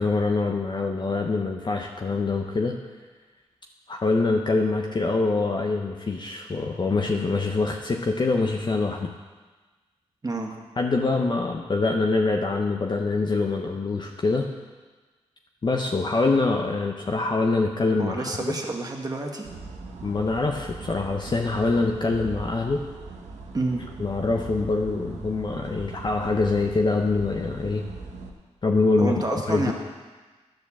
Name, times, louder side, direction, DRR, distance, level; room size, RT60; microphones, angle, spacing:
voice 1, 0.0-2.8 3.9-9.1 10.8-14.5 15.6-18.6 20.0-22.8 24.0-27.9 28.6-29.7, left 3 dB, 40° left, 2 dB, 0.7 m, -24 dB
voice 2, 18.0-19.5 23.5-23.8 29.0-29.7, right 2 dB, 35° right, 1 dB, 1.4 m, -28 dB
sound 1, 19.4-28.3, right 3 dB, 85° right, 0.9 m, -40 dB
10.5 x 4.4 x 7.2 m, 1.3 s
cardioid pair, 65°, 12 cm